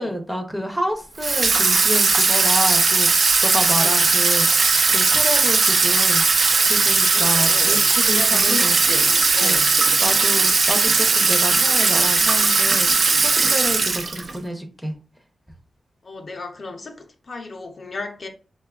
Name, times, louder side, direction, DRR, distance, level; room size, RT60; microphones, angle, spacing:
voice 1, 0.0-6.2 6.6-8.8 9.4-9.6 10.0-12.9 13.2-14.9, equal, 5° right, 0.6 m, -29 dB
Water tap faucet / Sink (filling or washing), 1.2-14.4, right 4 dB, 55° right, 0.4 m, -18 dB
voice 2, 7.1-7.8 8.1-9.7 16.0-18.3, left 3 dB, 45° left, 0.5 m, -34 dB
3.2 x 2.2 x 2.3 m
cardioid pair, 80°, 0 cm